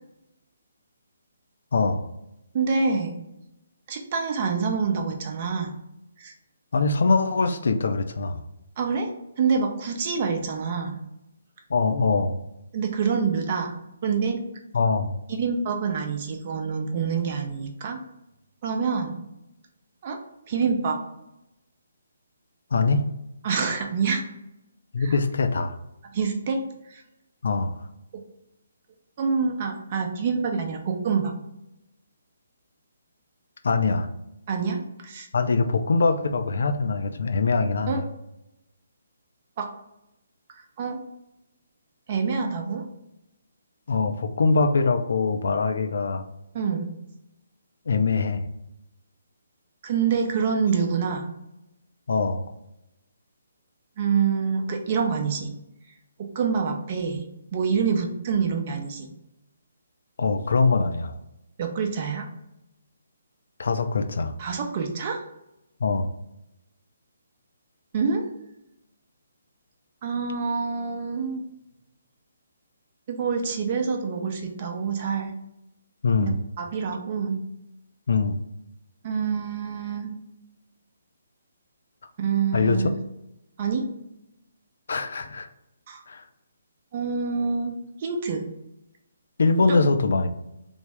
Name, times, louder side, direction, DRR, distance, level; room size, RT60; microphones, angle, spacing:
voice 1, 1.7-2.1 6.7-8.4 11.7-12.4 14.7-15.2 22.7-23.1 24.9-25.8 27.4-27.7 33.6-34.1 35.3-38.0 43.9-46.2 47.9-48.5 52.1-52.5 60.2-61.2 63.6-64.3 65.8-66.1 76.0-76.4 78.1-78.4 82.5-82.9 84.9-85.5 86.1-86.2 89.4-90.3, left 4 dB, 60° left, 7 dB, 0.3 m, -23 dB
voice 2, 2.5-3.2 3.9-5.7 6.2-6.3 8.8-9.1 9.4-11.0 12.7-13.7 14.0-14.4 15.3-18.0 18.6-19.2 20.0-20.2 20.5-21.0 23.4-24.3 25.0-25.2 26.1-26.6 26.9-27.0 29.2-31.3 34.5-35.3 37.9-38.0 39.6-39.7 40.5-41.0 42.1-42.8 46.5-46.9 49.8-51.2 54.0-55.5 56.3-57.2 57.5-59.1 61.6-62.3 64.4-65.2 67.9-68.2 70.0-71.4 73.1-75.3 76.2-77.4 79.0-80.1 82.2-83.0 83.6-83.8 85.9-86.0 86.9-88.4 89.7-89.8, right 5 dB, 40° right, 3 dB, 0.6 m, -26 dB
3.3 x 2.0 x 3.3 m, 0.87 s
figure-of-eight pair, 140°, 0 cm